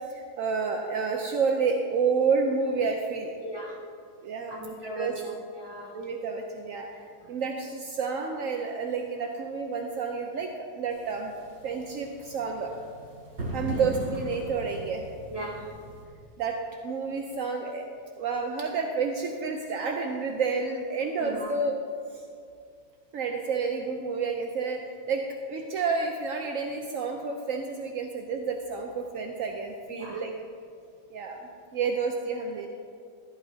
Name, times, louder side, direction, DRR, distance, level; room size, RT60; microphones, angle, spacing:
voice 1, 0.1-3.3 4.2-5.1 5.9-11.3 11.6-12.7 13.5-15.0 16.4-17.8 18.2-21.8 22.1-22.2 23.1-25.2 25.5-30.3 31.1-32.7, right 5 dB, 70° right, 3 dB, 0.8 m, -30 dB
voice 2, 3.4-3.8 4.5-5.9 13.7-13.8 15.3-15.7 21.2-21.5 29.9-30.2, right 1 dB, 10° right, -6 dB, 2.4 m, -38 dB
sound 1, 10.9-16.0, right 1 dB, 90° right, 3.2 m, -39 dB
14.5 x 12.5 x 2.8 m, 2.3 s
omnidirectional pair, 2.1 m